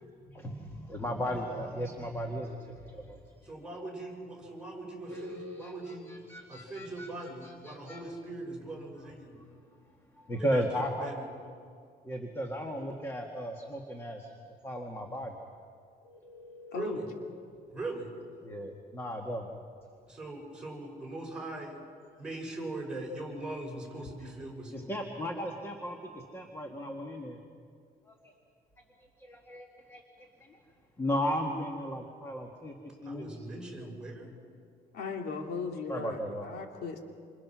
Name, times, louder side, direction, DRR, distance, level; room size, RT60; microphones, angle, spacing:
voice 1, 0.2-3.2 5.1-8.0 9.3-9.4 10.1-11.1 12.0-14.3 14.6-15.4 16.0-16.8 18.4-19.5 24.7-27.4 28.1-28.3 29.2-30.6 31.0-33.4 35.9-36.5, equal, 15° left, 2 dB, 1.9 m, -36 dB
voice 2, 3.4-6.1 6.5-9.4 10.4-11.3 16.7-17.0 17.7-18.1 20.1-21.8 22.2-24.9 33.0-34.3, right 2 dB, 5° right, -1 dB, 6.3 m, -40 dB
voice 3, 16.7-17.0 34.9-37.0, left 4 dB, 75° left, 2 dB, 2.7 m, -37 dB
28.0 x 27.0 x 6.2 m, 2.3 s
cardioid pair, 160°, 16 cm